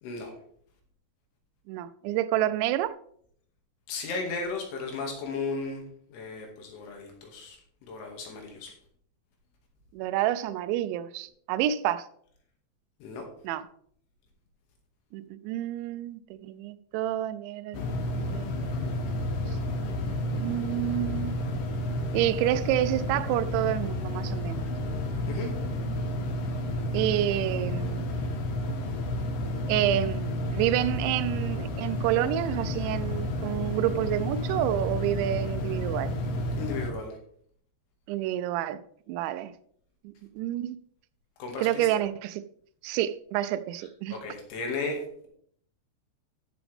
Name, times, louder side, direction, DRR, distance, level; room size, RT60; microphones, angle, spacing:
voice 1, 1.7-2.9 9.9-12.1 13.4-13.7 15.1-18.7 19.8-21.3 22.1-24.7 26.9-28.2 29.7-36.1 38.1-38.8 39.1-39.5 40.0-40.8 41.6-42.4 42.8-44.1, right 12 dB, 85° right, 2.9 m, -29 dB
voice 2, 3.9-5.8 6.1-7.6 7.9-8.7 13.0-13.2 25.3-25.5 36.6-37.2 41.4-41.9 44.1-45.3, left 3 dB, 85° left, 4.6 m, -35 dB
sound 1, 17.7-36.9, left 1 dB, 70° left, 2.3 m, -31 dB
14.0 x 7.1 x 3.5 m
omnidirectional pair, 5.3 m